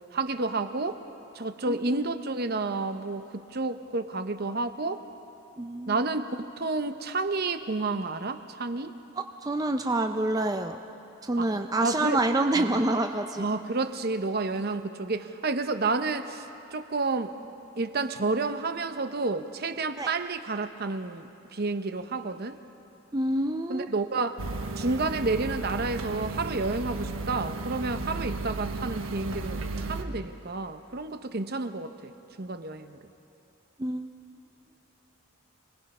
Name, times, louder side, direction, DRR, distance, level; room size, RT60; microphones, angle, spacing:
voice 1, 0.1-1.0 1.3-5.0 5.9-8.9 11.4-11.5 11.8-12.2 12.5-12.7 13.4-16.5 16.7-17.3 17.8-22.6 23.7-24.4 24.8-32.1 32.4-33.0, right 3 dB, 50° right, 9 dB, 0.8 m, -30 dB
voice 2, 1.7-2.0 5.6-6.0 9.2-10.8 11.2-13.4 20.0-20.1 23.1-23.9 33.8-34.1, right 2 dB, 20° right, 5 dB, 0.5 m, -27 dB
sound 1, 24.4-30.0, right 2 dB, 80° right, 1.3 m, -34 dB
26.5 x 20.0 x 5.5 m, 2.8 s
head